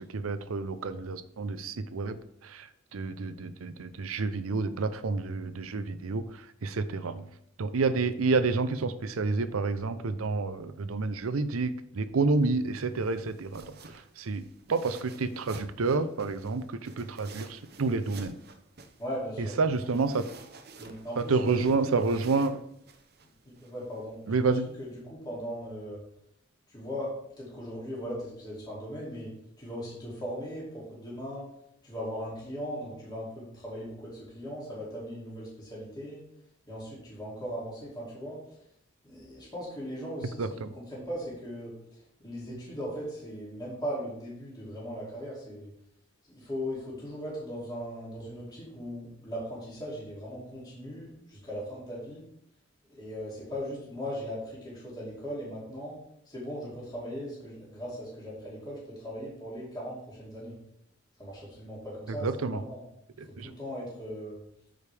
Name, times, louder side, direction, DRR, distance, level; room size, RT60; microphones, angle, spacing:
voice 1, 0.0-2.2 2.4-7.3 7.6-14.4 14.7-18.3 19.4-20.3 21.2-22.6 24.3-24.7 40.4-40.7 62.1-62.6 63.2-63.5, right 4 dB, 90° right, 12 dB, 0.6 m, -29 dB
sound 1, 12.4-25.0, right 3 dB, 50° right, 0.8 m, -51 dB
voice 2, 19.0-19.6 20.8-22.2 23.4-26.0 26.7-29.3 29.6-31.5 31.8-36.2 36.7-38.4 39.0-40.6 40.9-45.7 46.3-52.2 52.9-56.0 56.3-60.6 61.2-62.8 63.4-64.4, equal, 20° left, -7 dB, 2.7 m, -38 dB
13.0 x 5.1 x 3.4 m, 0.76 s
head